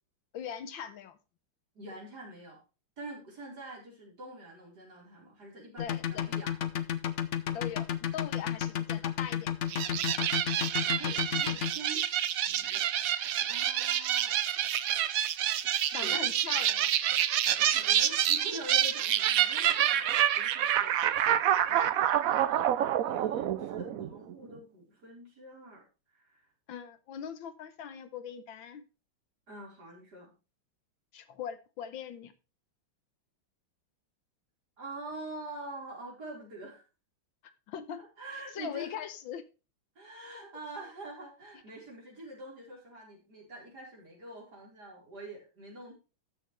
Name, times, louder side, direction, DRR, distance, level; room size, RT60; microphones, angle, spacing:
voice 1, 0.3-1.2 5.8-6.3 7.5-10.1 15.9-16.9 21.7-22.2 26.7-28.8 31.1-32.3 37.4-38.1 38.5-39.5, left 8 dB, 75° left, 1.7 m, -41 dB
voice 2, 1.7-2.6 3.0-6.5 10.5-14.4 15.6-16.2 16.5-16.6 17.5-20.0 20.3-21.1 23.0-25.8 26.1-26.4 29.5-30.3 34.8-36.8 38.0-39.0 39.9-45.9, right 1 dB, 50° right, 4.9 m, -45 dB
sound 1, 5.8-11.7, left 9 dB, 60° left, 0.7 m, -31 dB
sound 2, 9.7-24.3, right 11 dB, 75° right, 0.8 m, -28 dB
14.0 x 6.6 x 3.2 m
omnidirectional pair, 2.2 m